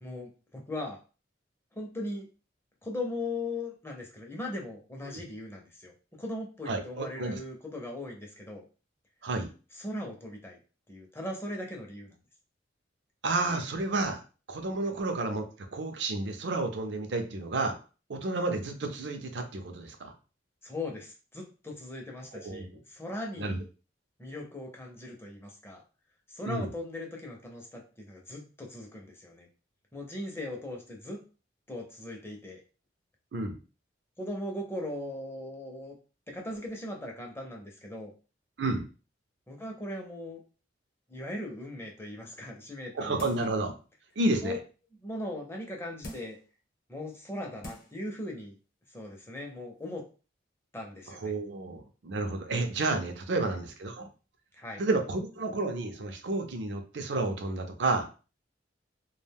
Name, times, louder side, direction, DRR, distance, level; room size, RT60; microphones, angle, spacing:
voice 1, 0.0-1.0 1.7-2.3 2.8-8.6 9.7-10.6 10.9-12.2 14.9-15.0 20.6-23.6 24.2-25.8 26.3-29.5 29.9-31.2 31.7-32.6 34.2-35.9 36.3-38.1 39.5-40.4 41.1-43.5 44.4-44.6 44.9-46.4 46.9-48.5 48.9-50.1 50.7-51.3 54.5-54.8, left 1 dB, 15° left, 0 dB, 0.5 m, -39 dB
voice 2, 6.7-7.4 9.2-9.5 13.2-14.2 14.5-17.8 18.1-20.1 22.4-22.7 23.4-23.6 26.5-26.7 33.3-33.6 38.6-38.9 43.0-43.7 44.2-44.6 51.2-54.1 54.8-58.1, right 2 dB, 65° right, 5 dB, 0.5 m, -31 dB
sound 1, 43.2-43.6 44.1-44.2 46.0-46.5 47.2-47.3 47.6-48.0 48.4-48.5, left 1 dB, 50° left, 0.8 m, -44 dB
2.4 x 2.2 x 3.3 m, 0.34 s
head